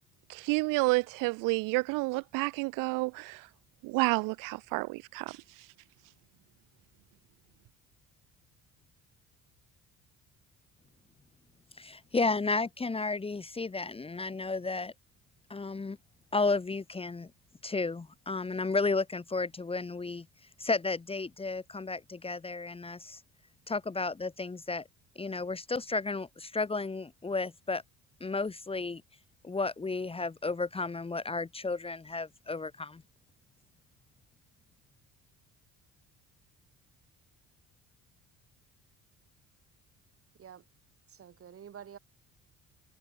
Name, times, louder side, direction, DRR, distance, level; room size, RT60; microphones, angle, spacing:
voice 1, 0.3-3.5 3.8-5.7, right 26 dB, 90° right, 0.6 m, -30 dB
voice 2, 11.8-14.9 15.5-16.0 16.3-17.3 17.6-20.2 20.6-23.2 23.7-24.8 25.1-27.8 28.2-29.0 29.4-33.0, left 3 dB, 20° left, 1.6 m, -33 dB
voice 3, 41.1-42.0, right 8 dB, 45° right, 5.8 m, -48 dB
cardioid pair, 110°, 31 cm